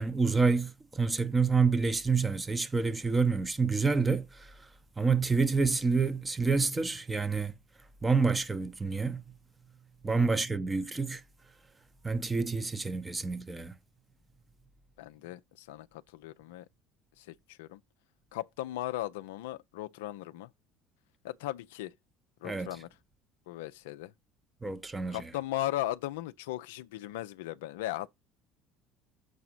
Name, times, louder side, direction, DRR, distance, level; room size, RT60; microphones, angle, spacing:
voice 1, 0.0-4.5 5.0-7.5 8.0-9.2 10.0-11.2 12.0-13.7 22.4-22.8 24.6-25.4, right 4 dB, 15° right, 0.7 m, -28 dB
voice 2, 15.0-16.7 17.2-17.8 18.3-20.5 21.2-21.9 22.4-22.9 23.5-24.1 25.1-28.1, left 14 dB, 65° left, 0.3 m, -37 dB
6.7 x 4.7 x 5.4 m
figure-of-eight pair, 60°, 0 cm